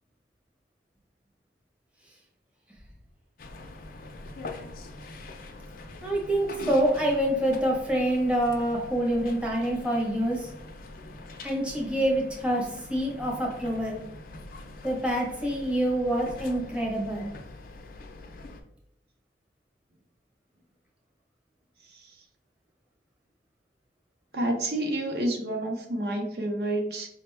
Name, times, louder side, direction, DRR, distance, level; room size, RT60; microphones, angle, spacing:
sound 1, 3.4-18.6, left 2 dB, 50° left, 0.4 m, -43 dB
voice 1, 6.0-10.5 11.4-14.0 14.8-17.2, right 1 dB, 5° right, -2 dB, 0.7 m, -26 dB
voice 2, 24.3-27.1, right 1 dB, 60° right, 2 dB, 0.6 m, -29 dB
5.1 x 2.2 x 3.2 m, 0.75 s
head